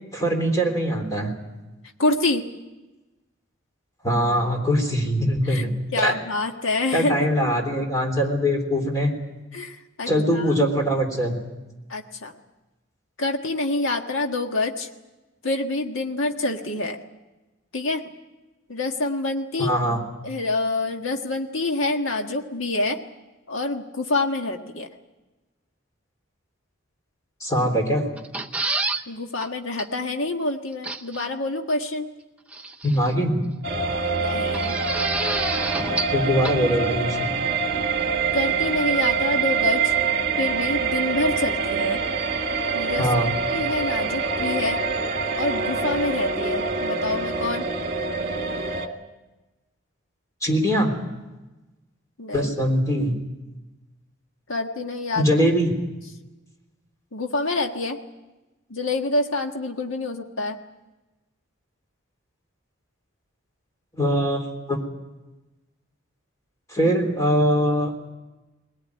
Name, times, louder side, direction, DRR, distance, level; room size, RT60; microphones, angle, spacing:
voice 1, 0.1-1.3 4.0-6.2 6.9-9.1 10.1-11.4 19.6-20.0 27.4-28.1 32.8-33.4 36.1-37.3 43.0-43.3 50.4-50.9 52.3-53.1 55.2-55.7 64.0-64.8 66.7-68.1, equal, 15° left, 2 dB, 3.6 m, -22 dB
voice 2, 2.0-2.4 5.4-5.6 5.9-7.3 9.5-10.6 11.9-12.3 13.2-14.9 15.4-17.0 17.7-18.0 18.7-19.7 20.2-23.0 23.5-24.9 29.1-32.1 34.1-34.8 38.3-39.9 40.4-42.0 42.7-43.1 43.5-44.8 45.3-47.7 52.2-52.5 54.5-55.3 57.1-58.0 58.7-60.6, left 2 dB, 80° left, 4 dB, 1.6 m, -26 dB
sound 1, 28.2-29.0 29.4-29.5 29.8-29.9 30.8-31.2 32.5-33.1 34.5-36.2 36.4-36.5, right 3 dB, 5° right, 0.7 m, -28 dB
sound 2, 33.6-48.9, right 5 dB, 45° right, 1.9 m, -25 dB
21.0 x 18.5 x 9.6 m, 1.1 s
head